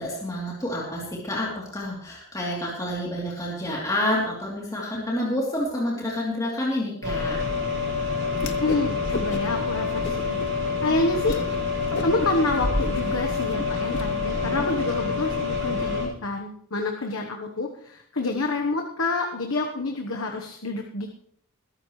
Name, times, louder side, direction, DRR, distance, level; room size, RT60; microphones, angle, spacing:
voice 1, 0.0-7.4 14.3-14.7, left 1 dB, 15° left, -5 dB, 3.2 m, -29 dB
sound 1, 7.0-16.1, left 4 dB, 60° right, 6.8 m, -27 dB
Whoosh swoosh swish, 8.3-8.9 9.1-9.6 10.0-10.5 10.9-11.0 11.3-11.5 11.8-14.0, left 2 dB, 50° left, 0.9 m, -33 dB
voice 2, 8.6-10.4 10.8-11.4 12.0-21.1, left 2 dB, 70° left, 2 dB, 1.2 m, -28 dB
22.0 x 12.5 x 3.2 m, 0.65 s
head